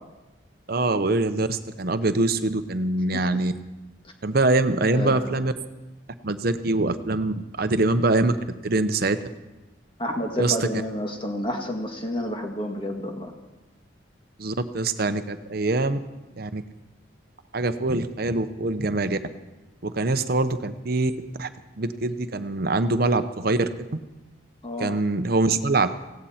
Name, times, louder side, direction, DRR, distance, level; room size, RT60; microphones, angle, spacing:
voice 1, 0.7-3.5 4.2-5.5 6.2-8.3 8.6-9.2 10.4-10.6 14.4-16.0 16.4-16.6 17.5-19.2 19.8-21.1 21.4-21.5 21.8-23.7 24.8-25.9, right 2 dB, 50° right, 10 dB, 0.8 m, -23 dB
voice 2, 4.9-5.3 10.0-13.3 24.6-25.0, left 1 dB, 25° left, 3 dB, 1.8 m, -30 dB
18.0 x 16.5 x 4.3 m, 1.1 s
head